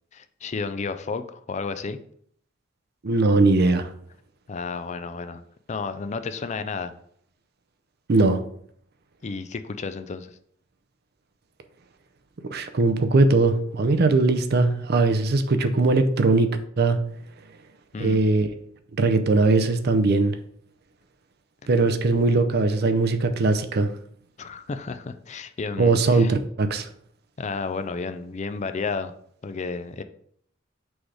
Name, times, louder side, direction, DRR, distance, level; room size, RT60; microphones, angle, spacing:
voice 1, 0.1-2.0 4.5-5.4 5.7-6.9 9.2-10.4 17.9-18.2 24.4-26.3 27.4-29.1 29.4-30.0, left 4 dB, 35° left, 10 dB, 0.4 m, -32 dB
voice 2, 3.0-3.9 8.1-8.4 12.5-16.5 16.8-17.0 18.0-18.5 19.0-20.3 21.7-23.9 25.8-26.9, right 3 dB, 55° right, 8 dB, 0.6 m, -20 dB
6.1 x 3.3 x 4.9 m, 0.65 s
head